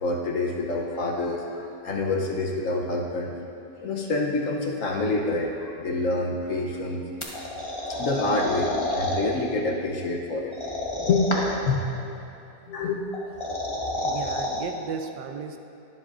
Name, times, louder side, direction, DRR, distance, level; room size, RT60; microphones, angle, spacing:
voice 1, 0.0-3.3 3.8-7.0 7.8-10.5 11.1-11.9 12.7-13.1, left 2 dB, 55° left, 0 dB, 1.0 m, -27 dB
sound 1, 7.2-9.2 10.5-11.7 13.1-14.6, left 1 dB, 20° left, 1.0 m, -29 dB
voice 2, 14.0-15.6, right 6 dB, 80° right, 6 dB, 1.3 m, -34 dB
21.0 x 7.8 x 2.5 m, 2.7 s
omnidirectional pair, 1.9 m